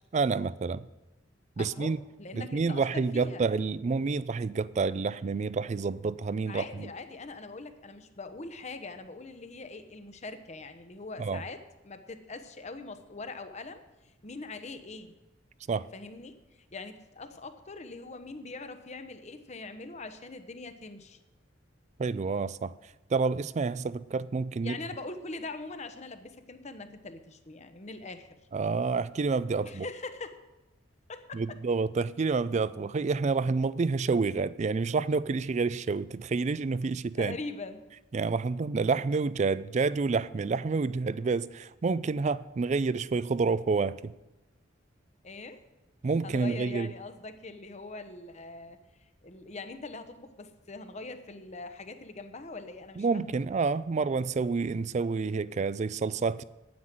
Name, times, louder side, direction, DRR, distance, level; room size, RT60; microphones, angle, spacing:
voice 1, 0.1-0.8 1.6-2.0 2.3-6.9 11.2-11.4 15.7-15.9 22.0-22.7 23.1-24.8 28.5-29.9 31.3-37.4 38.1-44.1 46.0-46.9 53.0-56.4, right 4 dB, 35° right, 0.4 m, -28 dB
voice 2, 1.6-3.4 6.5-15.1 15.9-16.3 16.7-21.2 24.6-28.3 29.6-30.4 31.1-31.4 37.2-37.8 45.2-45.6 46.2-53.4, left 3 dB, 35° left, 0.9 m, -42 dB
9.5 x 9.4 x 7.6 m
head